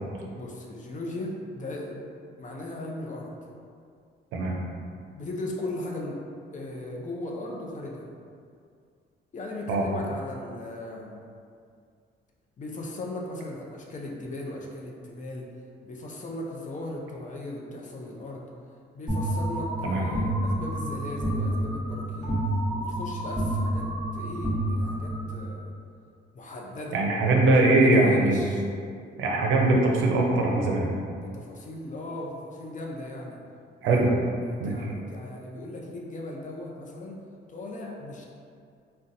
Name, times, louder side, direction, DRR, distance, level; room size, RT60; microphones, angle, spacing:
voice 1, 0.3-2.1 2.4-3.3 5.1-6.2 6.5-8.1 9.3-11.2 12.6-15.5 15.8-18.5 18.9-22.4 22.7-25.7 26.3-27.0 27.5-28.6 31.1-33.4 33.8-37.2 37.5-38.2, left 1 dB, 40° left, -2 dB, 0.6 m, -37 dB
sound 1, 19.1-25.4, right 1 dB, 5° right, 1.1 m, -29 dB
voice 2, 26.9-28.4 29.2-30.9 33.8-34.1 34.6-34.7, right 2 dB, 90° right, 0 dB, 0.5 m, -21 dB
3.9 x 2.2 x 2.6 m, 2.3 s
cardioid pair, 90°, 20 cm